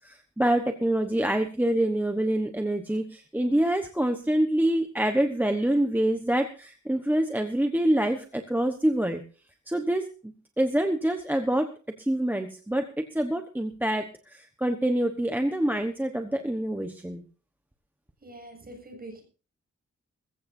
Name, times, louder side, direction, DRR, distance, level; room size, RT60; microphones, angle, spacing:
voice 1, 0.0-9.2 9.7-10.1 10.6-11.7 12.0-17.2, right 1 dB, 5° right, 6 dB, 1.1 m, -26 dB
voice 2, 18.2-19.2, right 1 dB, 30° right, 3 dB, 7.3 m, -44 dB
21.5 x 15.5 x 2.7 m, 0.37 s
wide cardioid pair, 160°, 29 cm